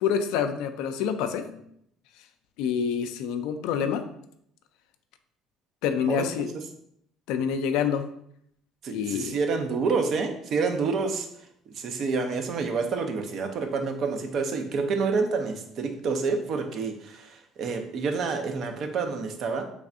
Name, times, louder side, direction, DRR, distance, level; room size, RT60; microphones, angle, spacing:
voice 1, 0.0-1.6 2.6-4.0 5.8-6.5 7.3-8.0 8.9-9.4, left 7 dB, 75° left, 8 dB, 0.3 m, -27 dB
voice 2, 6.1-6.5 8.8-11.3 11.7-19.6, right 4 dB, 55° right, 6 dB, 0.5 m, -28 dB
3.4 x 3.2 x 2.5 m, 0.71 s
hypercardioid pair, 70°, 0 cm